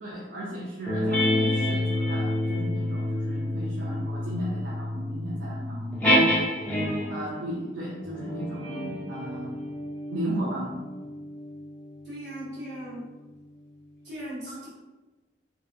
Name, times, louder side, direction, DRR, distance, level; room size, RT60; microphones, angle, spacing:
voice 1, 0.0-6.2 7.1-9.6 10.1-10.8 14.5-14.6, right 1 dB, 85° right, -5 dB, 0.5 m, -35 dB
sound 1, 0.9-7.3 8.0-12.9, left 1 dB, 10° left, 0.5 m, -28 dB
voice 2, 12.0-13.0 14.0-14.7, right 1 dB, 70° right, -8 dB, 1.2 m, -38 dB
2.6 x 2.2 x 2.5 m, 1.2 s
head